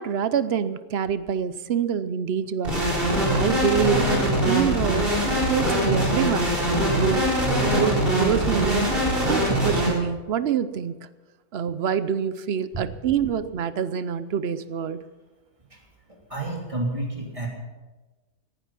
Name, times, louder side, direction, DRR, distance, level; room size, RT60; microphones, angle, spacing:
voice 1, 0.0-2.8 3.3-5.0 5.3-7.3 7.7-8.9 9.3-10.9 11.5-15.0, right 8 dB, 55° right, 14 dB, 0.8 m, -26 dB
sound 1, 2.6-9.9, equal, 35° right, 4.4 m, -22 dB
voice 2, 16.1-17.5, right 2 dB, 20° right, -1 dB, 3.2 m, -30 dB
18.0 x 11.5 x 5.8 m, 1.2 s
omnidirectional pair, 1.6 m